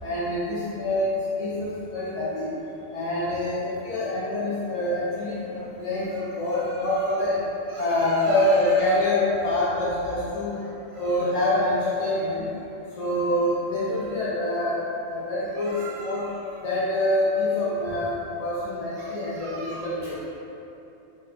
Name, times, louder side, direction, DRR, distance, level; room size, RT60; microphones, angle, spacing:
voice 1, 0.0-1.1 1.4-2.5 2.9-6.1 6.4-7.4 7.8-10.6 11.0-12.5 13.0-14.8 15.1-15.7 16.0-16.2 16.6-18.1 18.4-20.2, left 1 dB, 45° left, -9 dB, 0.5 m, -25 dB
voice 2, 6.1-7.1 7.7-9.0 10.6-11.3 13.0-13.1 15.5-16.7 18.3-18.4 19.0-20.0, right 2 dB, 60° right, -4 dB, 0.8 m, -43 dB
4.0 x 2.5 x 4.2 m, 2.9 s
omnidirectional pair, 1.4 m